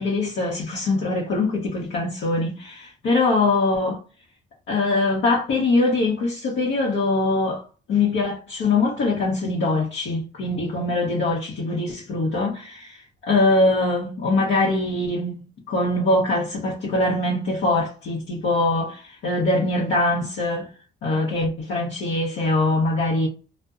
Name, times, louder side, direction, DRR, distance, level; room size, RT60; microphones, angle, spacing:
voice 1, 0.0-4.0 4.7-7.6 7.9-20.7 21.0-23.3, left 2 dB, 75° left, 0.8 m, -23 dB
2.6 x 2.1 x 2.4 m
cardioid pair, 90°, 20 cm